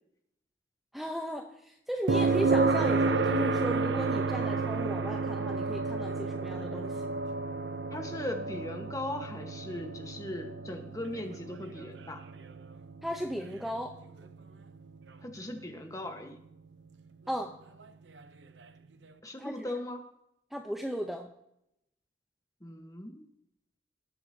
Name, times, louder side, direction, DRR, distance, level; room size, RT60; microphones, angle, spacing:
voice 1, 0.9-7.1 13.0-14.0 17.3-17.6 19.4-19.5 20.5-21.3, equal, ahead, 3 dB, 0.7 m, -36 dB
sound 1, 2.1-15.9 18.2-18.3, right 3 dB, 75° right, 0.7 m, -31 dB
voice 2, 7.9-12.2 15.2-16.4 19.2-20.1 22.6-23.2, left 1 dB, 20° left, 5 dB, 1.2 m, -39 dB
19.0 x 7.7 x 2.8 m, 0.80 s
head